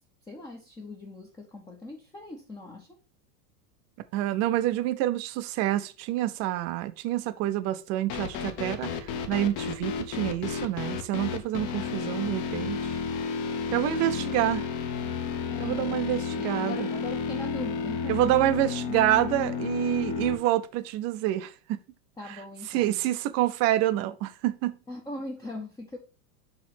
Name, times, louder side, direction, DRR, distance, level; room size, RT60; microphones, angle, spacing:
voice 1, 0.3-3.0 15.5-16.0 16.3-18.2 18.5-18.6 22.2-23.1 24.9-26.0, left 2 dB, 10° left, 0.7 m, -40 dB
voice 2, 4.1-13.0 13.7-14.6 15.6-16.9 18.1-21.8 22.3-22.4 22.7-24.8, right 14 dB, 35° right, 0.5 m, -27 dB
sound 1, 8.1-20.4, left 6 dB, 40° left, 1.0 m, -32 dB
7.3 x 3.2 x 5.9 m
supercardioid pair, 145°, 48 cm